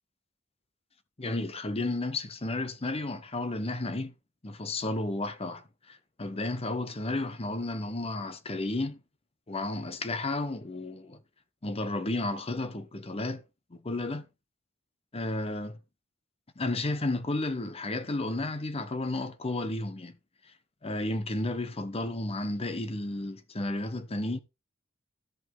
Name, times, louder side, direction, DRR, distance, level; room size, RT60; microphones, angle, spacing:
voice 1, 1.2-4.1 4.4-9.0 9.5-11.2 11.6-13.4 13.7-14.3 15.1-15.8 16.6-20.1 20.8-24.4, left 2 dB, 30° left, 0.8 m, -32 dB
13.5 x 5.4 x 3.7 m
head